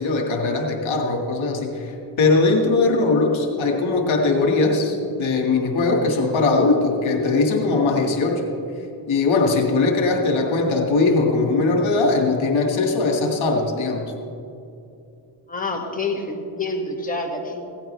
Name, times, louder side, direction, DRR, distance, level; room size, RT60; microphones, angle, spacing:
voice 1, 0.0-8.5 9.1-14.1, left 3 dB, 70° left, 2 dB, 2.1 m, -20 dB
voice 2, 15.5-17.6, left 3 dB, 15° left, 0 dB, 2.0 m, -27 dB
17.5 x 15.0 x 3.4 m, 2.6 s
cardioid pair, 70°, 50 cm